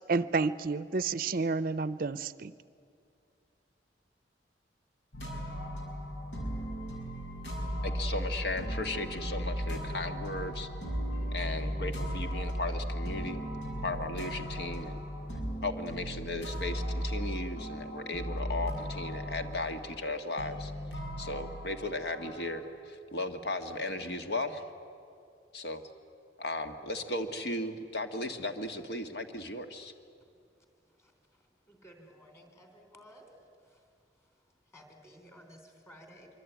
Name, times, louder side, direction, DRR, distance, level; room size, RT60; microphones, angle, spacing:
voice 1, 0.1-2.5, right 4 dB, 50° right, 16 dB, 0.6 m, -30 dB
sound 1, 5.1-22.6, equal, 90° left, 6.0 m, -36 dB
voice 2, 7.8-10.7 11.3-13.4 13.8-15.0 15.6-20.7 21.2-24.6 25.5-25.8 26.4-29.9, left 2 dB, 65° left, 6 dB, 1.6 m, -36 dB
voice 3, 31.8-33.2 34.7-35.6 35.9-36.3, equal, 15° left, 4 dB, 3.8 m, -54 dB
25.0 x 24.5 x 9.3 m, 2.5 s
head